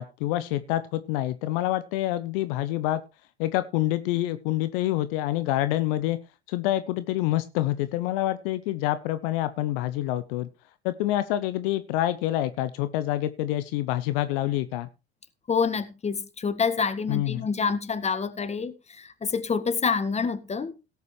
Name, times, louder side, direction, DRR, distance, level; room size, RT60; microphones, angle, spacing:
voice 1, 0.0-3.0 3.4-6.2 6.5-10.5 10.8-14.9 17.1-17.5, left 14 dB, 60° left, 0.9 m, -27 dB
voice 2, 15.5-20.8, left 5 dB, 20° left, 1.5 m, -27 dB
17.5 x 8.4 x 3.2 m
figure-of-eight pair, 70°, 32 cm